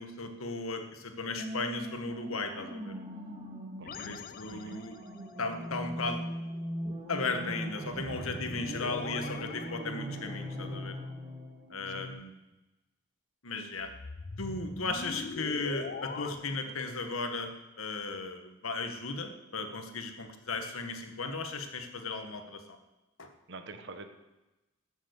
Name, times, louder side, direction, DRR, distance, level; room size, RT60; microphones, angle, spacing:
voice 1, 0.0-2.9 4.0-5.0 5.4-6.2 7.1-11.0 11.7-12.3 13.4-13.9 14.4-17.5 17.8-22.8 23.2-23.3, left 3 dB, 90° left, 7 dB, 1.6 m, -36 dB
sound 1, 1.4-12.1, equal, 20° right, 2.0 m, -40 dB
voice 2, 3.8-4.2 4.5-4.7 11.9-12.0 16.6-16.7 23.5-24.1, right 3 dB, 60° right, 7 dB, 1.3 m, -47 dB
sound 2, 3.9-5.2 7.9-10.6 13.8-16.3, left 4 dB, 45° left, 0.7 m, -42 dB
13.5 x 7.3 x 8.3 m, 1.0 s
head